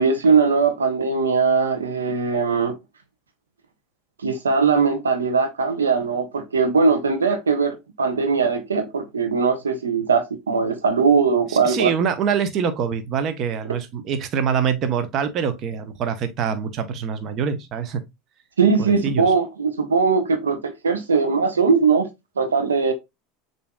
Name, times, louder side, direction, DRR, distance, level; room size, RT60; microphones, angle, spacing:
voice 1, 0.0-2.7 4.2-11.9 18.6-22.1 22.4-22.9, right 5 dB, 90° right, 0.7 m, -20 dB
voice 2, 11.5-18.0 18.8-19.3, right 7 dB, 45° right, 0.7 m, -25 dB
6.8 x 2.7 x 2.2 m
hypercardioid pair, 85°, 0 cm